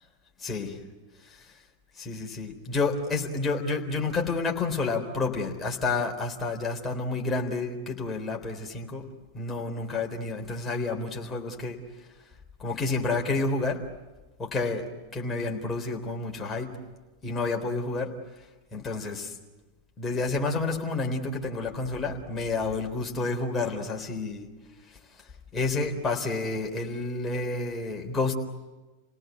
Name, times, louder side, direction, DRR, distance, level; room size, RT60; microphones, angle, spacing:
voice 1, 0.4-0.7 2.0-9.0 9.3-11.8 12.6-13.8 14.4-14.9 15.1-16.7 17.2-18.1 18.7-19.3 20.0-24.4 25.5-28.3, left 3 dB, 20° left, 1 dB, 3.8 m, -29 dB
29.5 x 18.5 x 9.4 m, 1.2 s
figure-of-eight pair, 90°, 0 cm